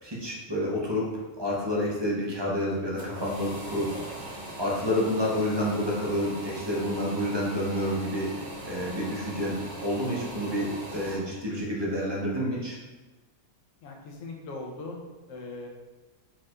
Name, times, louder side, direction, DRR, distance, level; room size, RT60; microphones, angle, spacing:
voice 1, 0.0-1.1 1.4-3.9 4.6-12.8, left 1 dB, 25° right, -5 dB, 0.7 m, -29 dB
sound 1, 3.0-11.2, right 1 dB, 50° right, 1.2 m, -40 dB
voice 2, 13.8-15.0 15.3-15.7, left 3 dB, 65° left, 0 dB, 1.1 m, -40 dB
4.5 x 4.4 x 2.5 m, 1.2 s
omnidirectional pair, 1.5 m